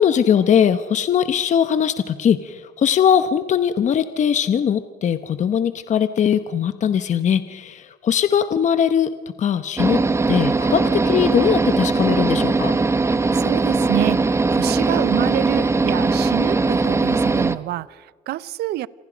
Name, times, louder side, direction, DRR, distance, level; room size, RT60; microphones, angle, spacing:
voice 1, 0.0-9.1 9.4-10.0 10.3-12.8, left 8 dB, 45° left, 1.0 m, -20 dB
sound 1, 9.8-17.6, right 3 dB, 15° right, 0.9 m, -20 dB
voice 2, 13.4-18.9, right 14 dB, 75° right, 0.7 m, -27 dB
29.5 x 27.0 x 5.2 m
cardioid pair, 110°, 17 cm